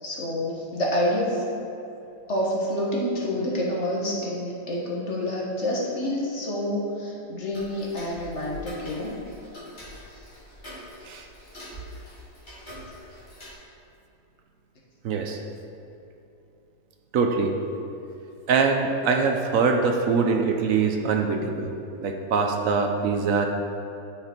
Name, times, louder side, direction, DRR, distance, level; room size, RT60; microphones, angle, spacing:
voice 1, 0.0-1.4 2.3-9.2, left 1 dB, 45° left, -3 dB, 1.5 m, -28 dB
Tick-tock, 7.5-13.5, left 1 dB, 30° left, 2.1 m, -44 dB
voice 2, 15.0-15.4 17.1-17.5 18.5-21.7 22.0-23.5, right 5 dB, 65° right, 3 dB, 0.9 m, -23 dB
9.7 x 5.8 x 4.4 m, 2.9 s
omnidirectional pair, 1.7 m